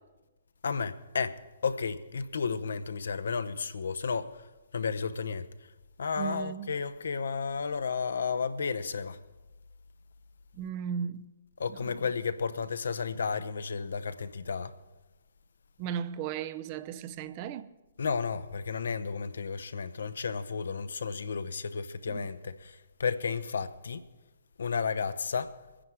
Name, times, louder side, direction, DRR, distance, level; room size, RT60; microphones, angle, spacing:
voice 1, 0.6-4.5 4.7-5.5 6.0-9.2 11.6-14.7 18.0-24.0 24.6-25.6, left 5 dB, 70° left, 0.8 m, -32 dB
voice 2, 6.2-6.7 10.5-11.3 11.7-12.0 15.8-17.7 22.1-22.3, right 8 dB, 35° right, 0.6 m, -36 dB
22.5 x 10.0 x 4.8 m
figure-of-eight pair, 130°, 0 cm